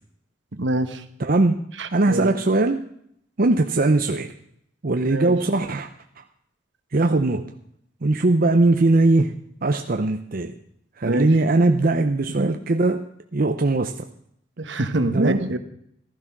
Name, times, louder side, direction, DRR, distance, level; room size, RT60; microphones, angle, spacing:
voice 1, 0.5-1.0 1.8-2.4 5.0-5.3 11.0-11.3 12.4-12.5 14.6-15.6, right 1 dB, 75° right, 9 dB, 1.3 m, -25 dB
voice 2, 1.2-1.6 1.9-2.8 3.4-4.3 4.8-5.9 6.2-6.3 6.9-7.5 8.0-9.4 9.6-10.5 11.0-13.0 13.3-14.1 15.1-15.5, right 2 dB, 50° right, 6 dB, 0.7 m, -20 dB
15.0 x 12.5 x 6.0 m, 0.70 s
head